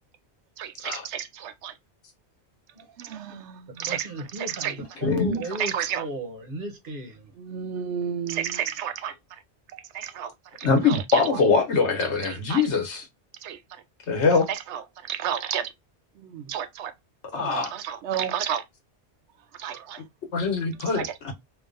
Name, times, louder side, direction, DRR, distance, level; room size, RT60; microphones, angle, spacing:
voice 1, 0.6-1.7 3.0-4.8 5.6-6.1 7.4-9.1 9.7-10.3 10.6-11.4 12.0-12.7 13.4-13.6 14.5-15.7 16.2-16.9 17.3-18.6 19.6-20.0 20.9-21.1, right 9 dB, 90° right, 0.9 m, -32 dB
voice 2, 3.9-7.2, equal, 55° right, 1.0 m, -34 dB
voice 3, 5.0-5.4 10.6-13.0 14.1-14.5 17.3-17.7 20.3-21.3, left 4 dB, 80° left, 1.3 m, -23 dB
3.8 x 2.6 x 2.5 m
omnidirectional pair, 1.1 m